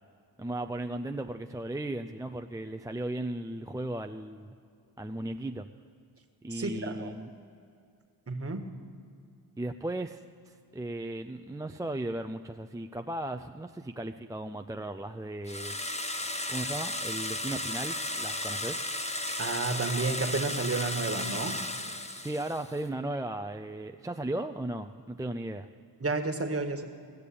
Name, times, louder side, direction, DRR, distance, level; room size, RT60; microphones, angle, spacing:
voice 1, 0.4-4.5 5.0-5.7 6.4-7.3 9.6-15.8 16.5-18.8 22.2-25.7, right 1 dB, 10° right, 6 dB, 0.4 m, -36 dB
voice 2, 6.5-7.1 8.3-8.7 19.4-21.6 26.0-26.8, right 3 dB, 35° right, 5 dB, 1.5 m, -31 dB
sound 1, 15.5-22.8, left 1 dB, 15° left, 1.0 m, -34 dB
17.0 x 6.8 x 8.6 m, 2.4 s
supercardioid pair, 55°, 43 cm